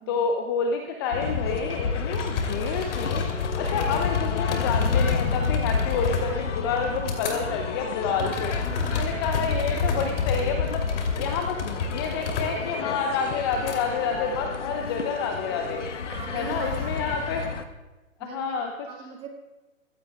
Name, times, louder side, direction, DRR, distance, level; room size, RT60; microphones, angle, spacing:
voice 1, 0.1-3.3 3.6-10.8 11.2-15.9 16.3-17.5 18.2-18.9, left 5 dB, 20° left, 4 dB, 0.7 m, -29 dB
sound 1, 1.1-17.6, left 5 dB, 65° left, 1.2 m, -30 dB
sound 2, 1.8-1.9 2.1-7.4 7.8-13.8 14.3-14.9 16.1-17.6, left 4 dB, 45° left, 3.1 m, -31 dB
voice 2, 8.7-9.2 16.1-17.0 18.2-18.4 18.9-19.3, right 7 dB, 15° right, 2 dB, 1.8 m, -41 dB
25.0 x 15.5 x 2.4 m, 1.1 s
figure-of-eight pair, 135°, 39 cm